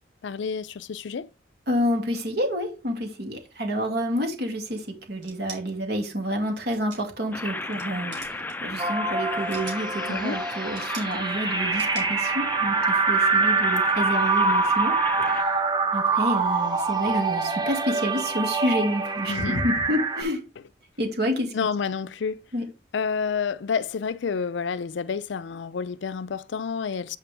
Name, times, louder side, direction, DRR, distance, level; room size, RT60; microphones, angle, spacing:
voice 1, 0.2-1.3 10.1-10.4 19.3-19.6 21.5-22.4 22.9-27.2, left 5 dB, 75° left, 0.4 m, -29 dB
voice 2, 1.7-8.1 8.6-15.0 15.3-15.5 15.9-20.4 21.0-21.5 22.5-22.6, equal, 60° right, 2.2 m, -28 dB
sound 1, 5.2-5.6 6.7-7.2 7.6-7.9 8.1-8.5 9.3-9.9 10.8-11.1 11.8-12.1, right 5 dB, 80° right, 3.0 m, -41 dB
sound 2, 7.3-15.4, left 2 dB, 10° left, 0.5 m, -34 dB
sound 3, 8.8-20.2, right 4 dB, 25° right, 0.9 m, -25 dB
8.3 x 5.0 x 3.4 m
head